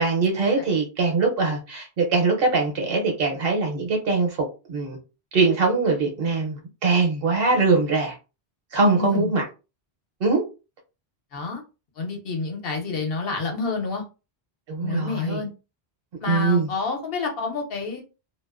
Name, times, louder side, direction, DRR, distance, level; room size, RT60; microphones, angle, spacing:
voice 1, 0.0-5.0 5.3-8.1 8.7-9.4 10.2-10.4 14.7-15.4 16.3-16.7, right 3 dB, 65° right, 0.9 m, -22 dB
voice 2, 9.0-9.3 11.3-11.6 12.0-14.0 14.8-15.5 16.2-18.0, left 4 dB, 65° left, 0.8 m, -28 dB
2.5 x 2.2 x 2.4 m
omnidirectional pair, 1.1 m